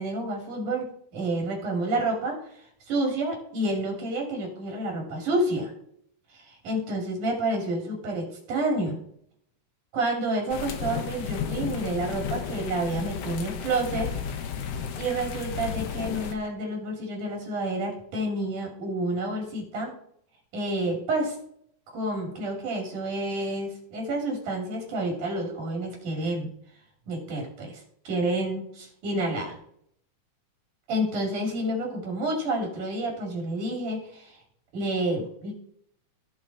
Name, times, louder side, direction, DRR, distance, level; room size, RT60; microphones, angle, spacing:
voice 1, 0.0-2.4 2.9-5.7 6.3-9.0 9.9-14.1 15.0-19.9 20.5-21.4 21.9-26.5 27.1-29.6 30.9-34.4 34.7-35.5, right 1 dB, 80° right, 0 dB, 4.4 m, -29 dB
sound 1, 10.5-16.3, left 7 dB, 65° left, 1.8 m, -33 dB
16.5 x 6.1 x 4.2 m, 0.66 s
omnidirectional pair, 3.6 m